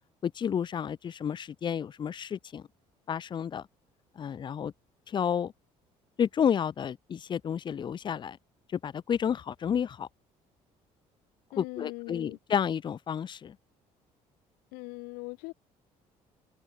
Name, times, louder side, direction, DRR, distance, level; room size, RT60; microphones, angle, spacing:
voice 1, 0.2-2.6 3.1-3.6 4.2-4.7 5.1-5.5 6.2-8.4 8.7-10.1 11.6-13.6, left 8 dB, 30° left, 0.4 m, -31 dB
voice 2, 11.5-12.4 14.7-15.5, left 27 dB, 85° left, 0.6 m, -40 dB
supercardioid pair, 80°, 15 cm